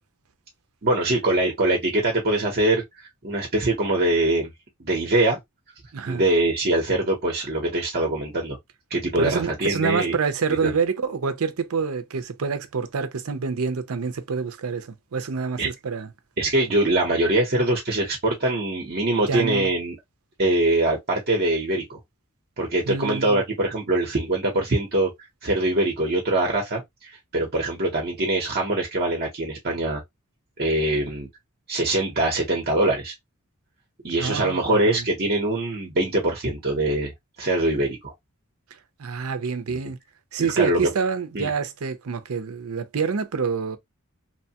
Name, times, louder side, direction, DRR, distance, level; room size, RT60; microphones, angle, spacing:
voice 1, 0.8-4.5 4.8-5.4 6.1-8.6 8.9-10.2 10.6-10.7 15.6-15.7 16.4-20.0 20.4-22.0 22.6-25.1 25.4-26.8 27.3-30.0 30.6-31.3 31.7-33.1 34.0-37.1 37.4-38.1 39.7-39.8 40.4-40.9 41.3-41.5, right 1 dB, 45° right, 0.8 m, -23 dB
voice 2, 5.9-6.2 9.2-16.1 19.2-19.7 22.9-23.4 34.2-35.0 39.0-40.0 40.3-43.8, right 5 dB, 75° right, 0.6 m, -27 dB
3.0 x 2.2 x 2.8 m
head